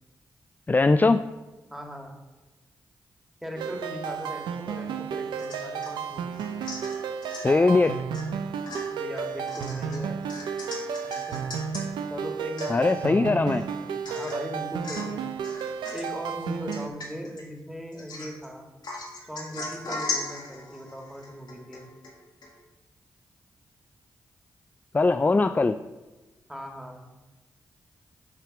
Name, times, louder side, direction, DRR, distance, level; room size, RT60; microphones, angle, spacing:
voice 1, 0.7-1.3 7.4-8.0 12.7-13.6 24.9-25.8, left 3 dB, 25° left, 10 dB, 0.3 m, -21 dB
voice 2, 1.7-2.1 3.4-6.7 8.9-10.2 11.0-11.5 12.1-15.3 15.9-18.7 19.3-21.9 26.5-27.1, equal, 5° right, 2 dB, 1.7 m, -39 dB
sound 1, 3.6-16.9, right 6 dB, 90° right, 0.5 m, -33 dB
Domestic sounds home sounds / Chink clink / Drip, 5.4-6.0 6.3-7.5 8.1-8.3 8.7-11.9 12.3-12.4 12.6-13.1 13.5-13.6 14.1-14.5 14.8-15.2 15.4-16.2 16.7-17.4 17.9-18.5 18.8-22.1 22.4-22.5, left 3 dB, 70° left, 1.7 m, -38 dB
9.1 x 3.3 x 5.8 m, 1.2 s
supercardioid pair, 40°, 8 cm